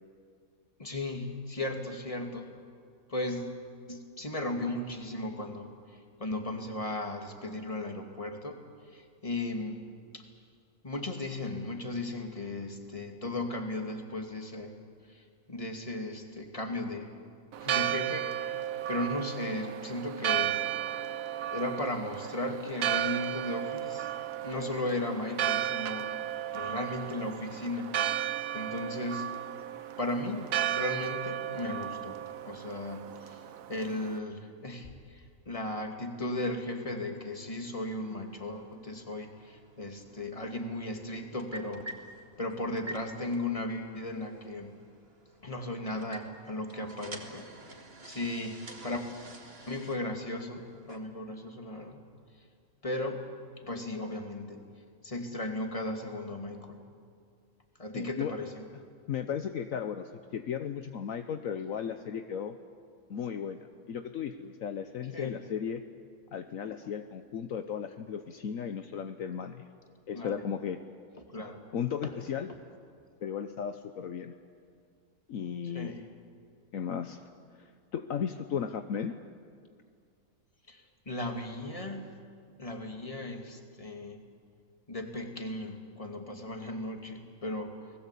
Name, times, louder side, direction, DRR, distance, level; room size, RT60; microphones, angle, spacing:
voice 1, 0.8-2.5 3.1-3.5 3.9-5.7 6.2-8.6 8.9-9.8 10.1-10.2 10.8-14.7 15.1-17.1 17.6-18.6 18.9-20.7 21.5-24.1 24.4-26.1 26.5-27.9 28.2-28.3 28.5-29.3 30.0-32.2 32.4-33.4 33.7-41.9 42.4-44.7 45.4-47.5 48.0-49.0 49.7-52.0 52.8-53.2 53.6-54.6 55.0-56.8 57.8-58.6 65.1-65.4 66.8-66.9 70.1-70.4 71.3-71.7 72.0-72.1 75.7-76.0 80.7-82.2 82.6-84.2 84.9-87.7, left 2 dB, 25° left, 4 dB, 2.5 m, -36 dB
Church bell, 17.5-34.2, right 11 dB, 70° right, 1.2 m, -34 dB
sound 1, 37.3-51.0, right 2 dB, 40° right, 2.4 m, -50 dB
voice 2, 57.9-58.3 59.1-62.6 63.1-65.8 66.3-69.7 70.1-70.8 71.7-72.5 73.2-74.3 75.3-75.9 76.7-77.2 77.6-79.1, left 8 dB, 65° left, 8 dB, 1.2 m, -35 dB
30.0 x 20.0 x 8.4 m, 2.2 s
omnidirectional pair, 1.5 m